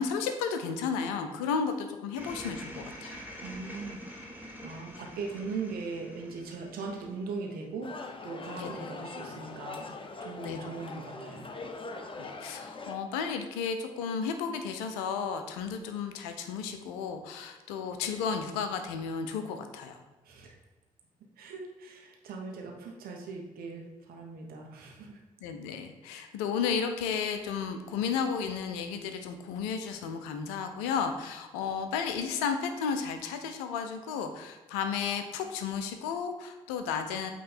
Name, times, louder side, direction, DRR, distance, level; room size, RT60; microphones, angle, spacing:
voice 1, 0.0-3.2 8.6-8.7 10.4-10.6 12.2-20.0 25.4-37.3, left 6 dB, 70° left, 7 dB, 0.6 m, -33 dB
sound 1, 2.2-7.6, equal, 10° right, 1.8 m, -45 dB
voice 2, 3.4-4.0 4.6-7.9 8.2-9.9 10.2-11.5 20.2-20.6 21.4-25.2, right 4 dB, 60° right, 1 dB, 1.2 m, -39 dB
sound 2, 7.8-13.0, left 3 dB, 30° left, 0.8 m, -42 dB
8.5 x 3.1 x 4.3 m, 1.2 s
figure-of-eight pair, 40°, 17 cm